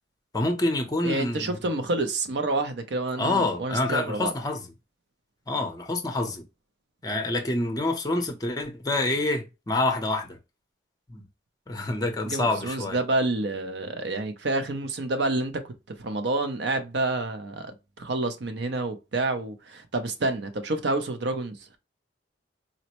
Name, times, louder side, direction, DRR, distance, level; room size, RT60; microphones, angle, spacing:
voice 1, 0.3-1.6 3.2-4.6 5.5-6.4 7.0-10.4 11.1-11.2 11.7-13.0, left 2 dB, 20° left, 0.6 m, -27 dB
voice 2, 1.0-4.3 12.2-15.7 16.0-17.7 18.0-21.5, right 2 dB, 65° right, 0.6 m, -28 dB
4.0 x 2.1 x 2.9 m
head